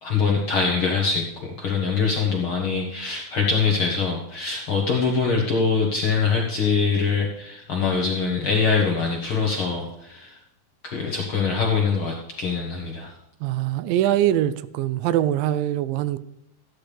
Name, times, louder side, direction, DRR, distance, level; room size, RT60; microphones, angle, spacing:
voice 1, 0.0-10.4 10.8-13.1, left 5 dB, 60° left, -1 dB, 1.4 m, -23 dB
voice 2, 13.4-16.2, right 12 dB, 90° right, 14 dB, 2.3 m, -23 dB
14.5 x 10.5 x 3.4 m, 0.82 s
omnidirectional pair, 3.9 m